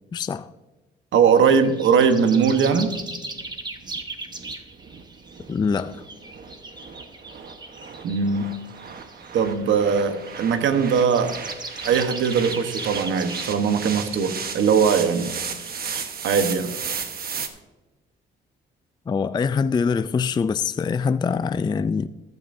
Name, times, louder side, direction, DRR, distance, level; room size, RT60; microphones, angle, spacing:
voice 1, 0.1-0.5 5.5-6.0 19.1-22.1, left 5 dB, 20° left, 0.3 m, -24 dB
voice 2, 1.1-2.9 8.0-8.5 9.3-11.4 11.8-15.3 16.2-16.7, right 6 dB, 70° right, 1.2 m, -20 dB
sound 1, 1.3-16.5, right 2 dB, 20° right, 1.2 m, -39 dB
sound 2, 2.9-17.5, right 6 dB, 50° right, 1.1 m, -35 dB
14.5 x 10.5 x 2.7 m
cardioid pair, 90°, 20 cm